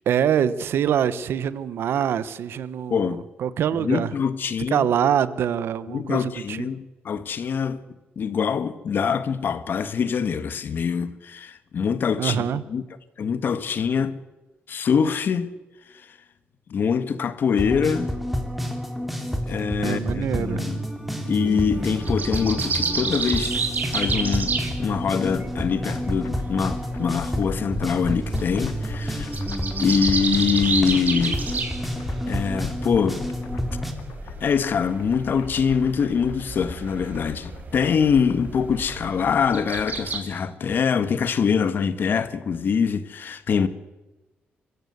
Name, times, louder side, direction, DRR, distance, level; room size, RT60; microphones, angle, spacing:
voice 1, 0.1-4.1 4.7-6.7 12.2-12.6 19.8-20.6, right 9 dB, 85° right, 1.2 m, -24 dB
voice 2, 2.9-3.2 3.8-4.9 5.9-7.8 8.1-12.8 13.2-14.2 14.7-15.5 16.7-18.1 19.5-20.8 21.2-23.6 23.9-24.5 24.8-29.3 29.8-31.4 32.3-33.3 34.4-43.7, left 6 dB, 60° left, 1.5 m, -24 dB
sound 1, 17.5-33.9, equal, ahead, 3.0 m, -29 dB
sound 2, 21.7-40.2, right 5 dB, 50° right, 4.1 m, -31 dB
sound 3, 25.9-39.2, left 8 dB, 90° left, 1.5 m, -40 dB
23.5 x 15.5 x 8.1 m
cardioid pair, 110°, 4 cm